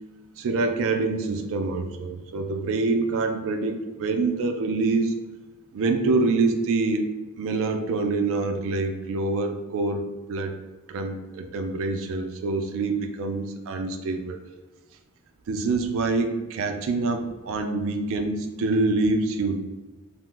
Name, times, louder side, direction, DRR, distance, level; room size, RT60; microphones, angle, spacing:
voice 1, 0.4-5.2 5.7-7.1 7.4-10.0 10.3-10.5 10.9-14.4 15.5-19.6, right 3 dB, 60° right, 6 dB, 0.3 m, -25 dB
2.8 x 2.1 x 3.2 m, 1.2 s
head